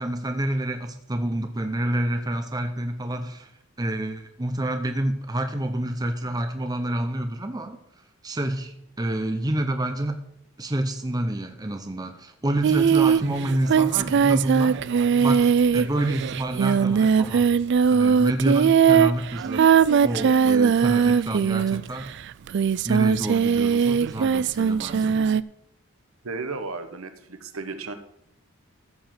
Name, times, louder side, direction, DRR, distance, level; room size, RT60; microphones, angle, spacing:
voice 1, 0.0-3.5 3.8-7.8 8.2-10.2 10.6-14.8 15.2-17.5 17.9-19.6 20.0-22.1 22.8-25.2, right 1 dB, 20° right, 7 dB, 0.7 m, -28 dB
Singing, 12.6-22.0 22.5-25.4, right 6 dB, 55° right, 0.3 m, -20 dB
voice 2, 26.2-27.9, right 3 dB, 70° right, 8 dB, 1.2 m, -34 dB
14.0 x 5.0 x 7.5 m, 0.74 s
head